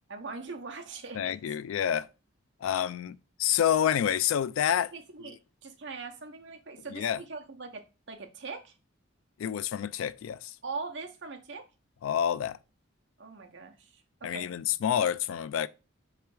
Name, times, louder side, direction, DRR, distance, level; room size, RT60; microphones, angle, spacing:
voice 1, 0.1-1.3 4.9-7.8 8.1-8.7 10.6-11.7 13.2-14.5, right 4 dB, 60° right, 0.8 m, -41 dB
voice 2, 1.1-2.1 2.6-4.9 5.2-5.3 6.9-7.2 9.4-10.6 12.0-12.6 14.2-15.7, left 9 dB, 80° left, 0.3 m, -28 dB
3.4 x 3.3 x 4.7 m
head